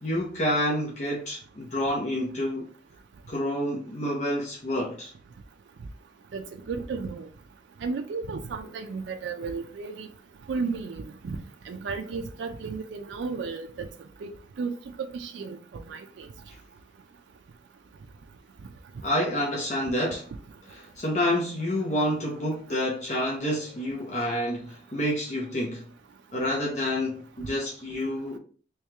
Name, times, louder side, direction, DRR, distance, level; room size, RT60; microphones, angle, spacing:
voice 1, 0.0-2.7 3.3-5.1 19.0-20.3 20.7-25.8 26.3-28.4, left 1 dB, 40° left, 0.8 m, -28 dB
voice 2, 6.3-7.3 7.8-10.1 10.5-13.9 14.2-14.3 14.6-14.7 15.0-16.3 27.4-27.5, right 4 dB, 80° right, 0.4 m, -34 dB
3.2 x 3.1 x 3.3 m
head